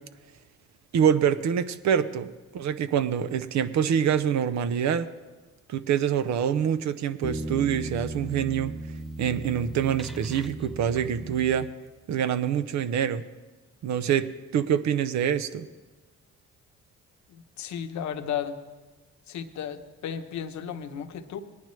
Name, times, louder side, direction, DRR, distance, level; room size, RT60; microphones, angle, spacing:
voice 1, 0.9-5.1 5.7-8.7 9.2-11.7 12.1-13.2 13.8-15.7, right 8 dB, 65° right, 13 dB, 0.6 m, -25 dB
sound 1, 7.2-12.1, right 1 dB, ahead, 0.3 m, -37 dB
voice 2, 17.3-18.6 19.3-21.4, left 8 dB, 70° left, 7 dB, 0.9 m, -34 dB
18.0 x 10.5 x 3.1 m, 1.2 s
cardioid pair, 90°, 30 cm